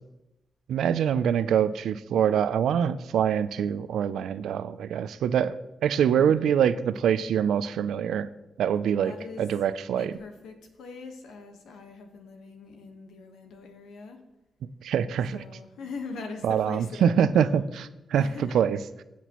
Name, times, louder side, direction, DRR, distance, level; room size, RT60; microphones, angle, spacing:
voice 1, 0.7-5.6 5.8-8.3 8.6-9.1 9.4-10.1 14.8-15.4 16.4-18.2 18.5-18.8, right 8 dB, 85° right, 14 dB, 0.4 m, -24 dB
voice 2, 6.1-6.5 9.0-9.5 9.9-14.2 15.3-17.6 18.1-18.6, left 4 dB, 85° left, 5 dB, 1.2 m, -42 dB
17.0 x 5.9 x 3.0 m, 0.96 s
supercardioid pair, 50°, 0 cm